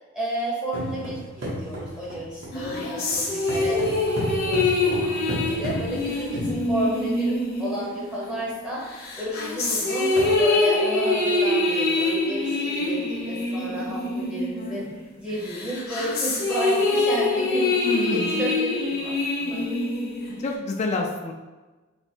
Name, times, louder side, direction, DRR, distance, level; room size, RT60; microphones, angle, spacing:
voice 1, 0.1-10.1 10.4-19.6, equal, 5° right, -6 dB, 0.7 m, -32 dB
sound 1, 0.7-7.2 7.9-8.0 8.3-8.5 8.9-9.0 9.6-9.7 9.9-10.3, equal, 60° right, 1.0 m, -34 dB
sound 2, 2.5-8.5 9.0-15.0 15.4-20.5, left 2 dB, 50° left, 0.7 m, -25 dB
voice 2, 17.8-18.5 20.4-21.3, left 3 dB, 35° left, 2 dB, 0.4 m, -28 dB
3.3 x 2.1 x 4.2 m, 1.2 s
head